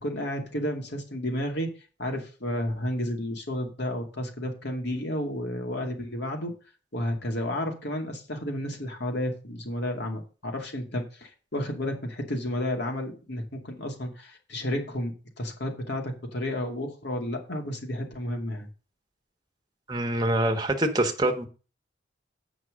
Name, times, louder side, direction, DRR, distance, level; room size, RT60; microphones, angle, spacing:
voice 1, 0.0-1.7 2.0-6.5 6.9-15.1 15.4-18.7, left 1 dB, 60° left, 2.4 m, -31 dB
voice 2, 19.9-21.5, right 1 dB, 20° right, 1.5 m, -25 dB
8.4 x 6.2 x 6.3 m
head